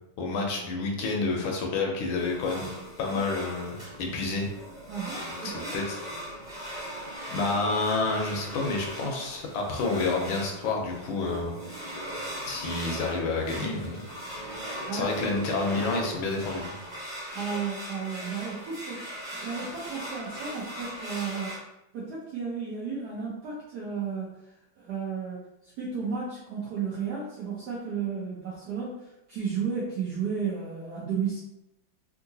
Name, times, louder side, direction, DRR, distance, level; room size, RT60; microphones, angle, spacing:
voice 1, 0.2-2.7 3.0-4.5 5.3-6.0 7.3-12.0 12.4-14.0 14.9-16.8, left 3 dB, 75° left, 1 dB, 1.3 m, -29 dB
sound 1, 2.1-21.6, equal, 20° right, 1.1 m, -39 dB
voice 2, 4.9-5.7 14.9-15.4 17.3-21.6 21.9-24.5 24.8-31.4, right 6 dB, 75° right, -5 dB, 0.9 m, -33 dB
3.7 x 2.5 x 2.7 m, 0.91 s
omnidirectional pair, 2.4 m